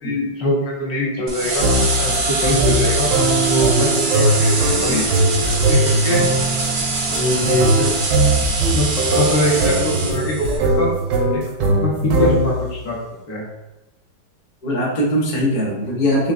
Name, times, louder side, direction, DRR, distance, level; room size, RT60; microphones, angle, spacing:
voice 1, 0.0-1.7 2.0-3.1 3.5-5.0 5.4-6.2 7.1-7.9 8.7-8.9 9.2-10.9 11.3-13.0 13.3-13.4, left 1 dB, 55° left, -3 dB, 1.2 m, -23 dB
sound 1, 1.3-10.6, right 3 dB, 90° right, 1.8 m, -23 dB
sound 2, 1.6-12.8, right 2 dB, 70° right, 1.2 m, -20 dB
voice 2, 14.6-16.3, equal, 85° left, -4 dB, 0.4 m, -21 dB
4.6 x 3.1 x 2.4 m, 0.98 s
omnidirectional pair, 2.2 m